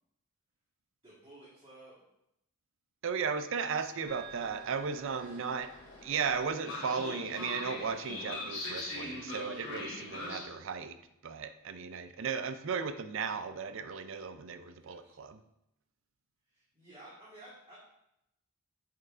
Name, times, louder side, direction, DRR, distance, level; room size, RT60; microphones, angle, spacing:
voice 1, 1.0-1.9 3.6-4.0 5.1-5.4 9.5-9.8 14.8-15.1 16.5-17.8, right 1 dB, 25° right, -9 dB, 1.5 m, -54 dB
voice 2, 3.0-5.7 6.0-11.0 11.2-15.4, right 5 dB, 60° right, 10 dB, 0.4 m, -35 dB
Train, 4.0-10.4, left 2 dB, 55° left, 1.5 m, -42 dB
7.6 x 5.4 x 2.5 m, 0.82 s
head